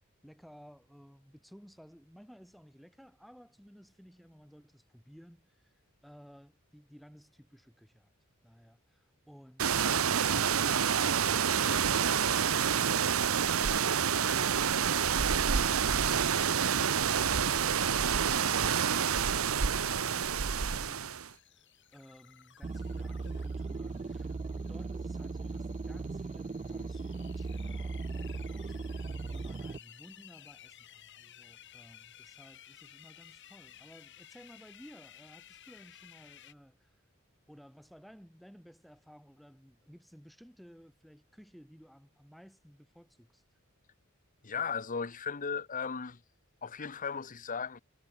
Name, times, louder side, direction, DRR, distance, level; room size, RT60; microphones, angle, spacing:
voice 1, 0.2-5.7 6.0-8.1 8.4-13.9 21.9-37.0 37.5-43.4, equal, ahead, 6.4 m, -56 dB
sound 1, 9.6-21.3, right 7 dB, 80° right, 0.9 m, -28 dB
sound 2, 17.8-36.5, left 11 dB, 60° left, 5.0 m, -56 dB
sound 3, 22.6-29.8, right 3 dB, 30° right, 0.4 m, -38 dB
voice 2, 44.4-46.2 46.6-47.8, left 6 dB, 40° left, 0.9 m, -36 dB
head